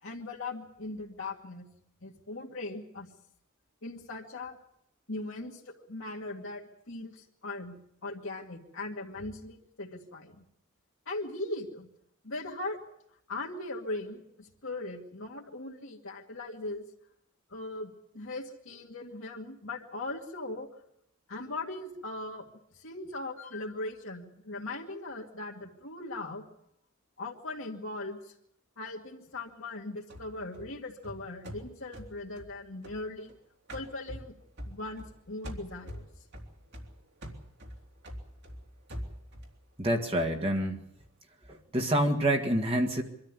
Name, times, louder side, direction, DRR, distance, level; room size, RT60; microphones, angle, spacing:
voice 1, 0.0-1.7 2.0-3.1 3.8-4.6 5.1-10.5 11.1-11.9 12.2-12.8 13.3-16.8 17.5-20.7 21.3-22.5 22.7-26.4 27.2-28.3 28.8-33.3 33.7-34.3 34.7-36.0, left 2 dB, 65° left, -2 dB, 2.3 m, -39 dB
sound 1, 30.1-33.3 33.7-35.2 35.4-39.6, equal, 55° right, 3.5 m, -44 dB
voice 2, 39.8-40.8 41.5-43.0, right 1 dB, 30° right, 2 dB, 1.9 m, -27 dB
24.5 x 13.5 x 9.8 m, 0.76 s
head